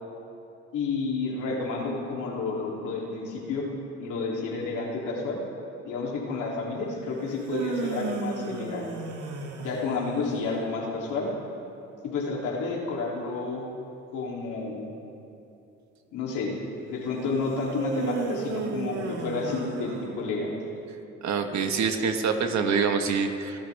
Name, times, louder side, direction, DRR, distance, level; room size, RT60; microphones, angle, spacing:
voice 1, 0.7-3.6 4.0-5.4 5.8-8.8 9.6-11.3 12.0-13.6 14.1-14.9 16.1-16.5 16.9-20.5, left 4 dB, 90° left, -3 dB, 3.2 m, -30 dB
sound 1, 7.2-10.5 17.6-20.6, right 4 dB, 85° right, 2.0 m, -33 dB
voice 2, 21.2-23.6, right 5 dB, 65° right, 5 dB, 1.6 m, -25 dB
27.5 x 13.0 x 3.6 m, 2.8 s
cardioid pair, 90°, 30 cm